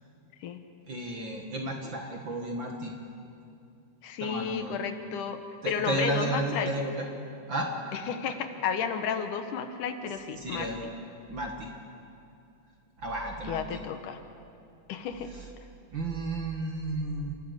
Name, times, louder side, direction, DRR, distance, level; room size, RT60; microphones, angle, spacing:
voice 1, 0.9-2.9 4.2-4.8 5.6-6.9 7.5-7.7 10.3-10.8 11.3-11.7 13.0-13.8 15.3-15.5 15.9-17.3, right 2 dB, 45° right, 1 dB, 2.0 m, -32 dB
voice 2, 4.0-5.4 5.7-6.7 7.9-10.9 13.5-14.2 14.9-15.3, left 7 dB, 75° left, 8 dB, 2.6 m, -32 dB
29.0 x 14.0 x 8.2 m, 2.5 s
omnidirectional pair, 3.7 m